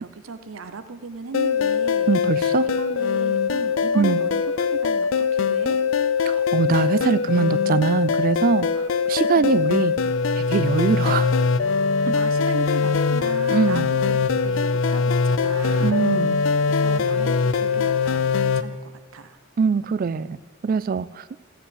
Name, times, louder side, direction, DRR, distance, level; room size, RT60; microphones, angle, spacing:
voice 1, 0.0-5.8 9.3-9.6 11.9-16.1 16.4-19.4, right 4 dB, 90° right, 10 dB, 0.7 m, -37 dB
sound 1, 1.3-18.6, left 5 dB, 70° left, 0.5 m, -22 dB
voice 2, 2.1-2.7 3.9-4.2 6.3-10.0 10.4-11.3 12.1-12.2 13.5-13.9 15.8-16.4 19.6-20.4 20.6-21.3, right 5 dB, 45° right, 18 dB, 0.3 m, -22 dB
14.5 x 5.5 x 7.9 m, 1.5 s
head